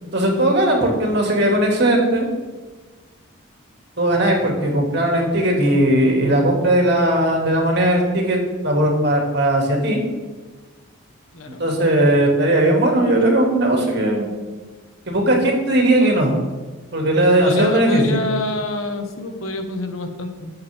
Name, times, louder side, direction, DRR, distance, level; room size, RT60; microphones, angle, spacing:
voice 1, 0.1-2.2 4.0-10.0 11.6-14.3 15.1-16.3 16.9-18.2, right 1 dB, 55° right, 0 dB, 2.7 m, -18 dB
voice 2, 17.4-20.5, left 2 dB, 85° left, 5 dB, 1.5 m, -26 dB
19.5 x 7.9 x 3.7 m, 1.3 s
head